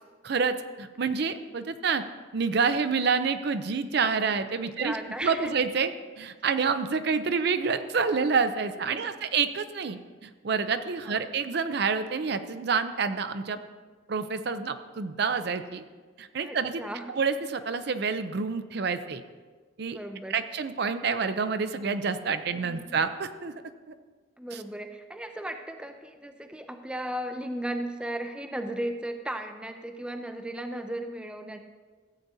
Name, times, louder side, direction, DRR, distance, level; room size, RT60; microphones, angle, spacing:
voice 1, 0.2-2.0 2.3-4.9 5.2-5.9 6.2-13.6 14.1-15.8 16.2-16.8 17.1-19.2 19.8-20.0 20.3-23.6 24.5-24.6, right 5 dB, 55° right, 10 dB, 0.5 m, -28 dB
voice 2, 4.6-5.5 8.9-9.1 11.1-11.3 16.4-17.0 19.9-20.4 22.5-23.0 24.4-31.6, right 1 dB, 5° right, 6 dB, 0.4 m, -36 dB
14.5 x 8.3 x 2.7 m, 1.4 s
head